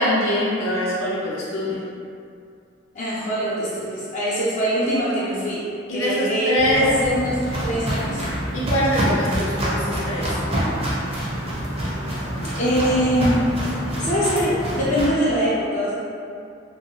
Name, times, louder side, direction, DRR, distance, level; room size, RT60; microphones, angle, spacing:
voice 1, 0.0-1.9 5.9-6.9 8.5-10.4, equal, 90° left, -6 dB, 0.6 m, -23 dB
voice 2, 2.9-5.6 5.9-8.2 12.6-13.4 14.0-15.9, equal, 40° left, -9 dB, 0.4 m, -23 dB
Walk footsteps, 6.6-15.0, equal, 30° right, 0.6 m, -26 dB
2.7 x 2.0 x 2.8 m, 2.4 s
head